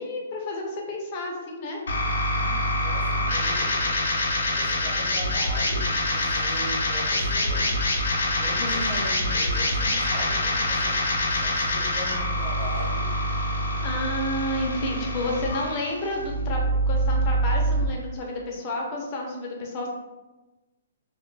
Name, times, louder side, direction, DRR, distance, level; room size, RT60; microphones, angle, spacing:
voice 1, 0.0-1.8 8.6-8.9 13.8-19.9, left 1 dB, 30° left, -1 dB, 0.5 m, -30 dB
sound 1, 1.9-17.9, left 1 dB, 80° left, 0.5 m, -25 dB
voice 2, 2.3-4.0 4.4-7.8 8.4-13.1, right 1 dB, 45° right, -5 dB, 1.0 m, -39 dB
2.1 x 2.1 x 3.1 m, 1.1 s
hypercardioid pair, 165°, 0 cm